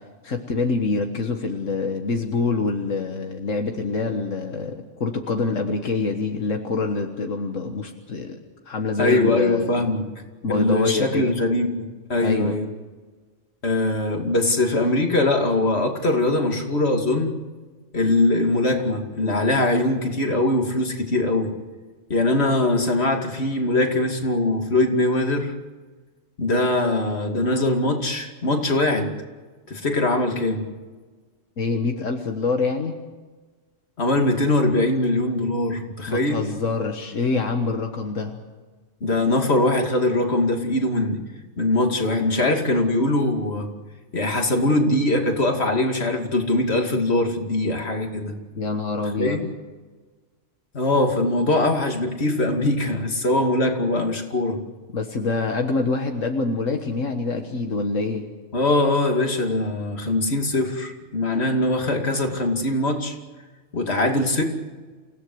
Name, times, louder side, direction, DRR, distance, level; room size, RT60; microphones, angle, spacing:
voice 1, 0.2-8.4 8.7-9.8 10.4-11.3 12.2-12.6 31.6-33.0 36.1-38.4 48.6-49.5 54.9-58.3, left 4 dB, 80° left, 4 dB, 1.9 m, -25 dB
voice 2, 9.0-10.0 10.5-12.7 13.6-17.4 17.9-21.5 22.1-25.5 26.4-29.1 29.7-30.7 34.0-36.4 39.0-41.2 41.6-43.7 44.1-48.3 49.2-49.5 50.7-54.6 58.5-63.2 63.7-64.4, left 2 dB, 55° left, 3 dB, 2.8 m, -22 dB
28.5 x 17.0 x 8.0 m, 1.3 s
omnidirectional pair, 1.3 m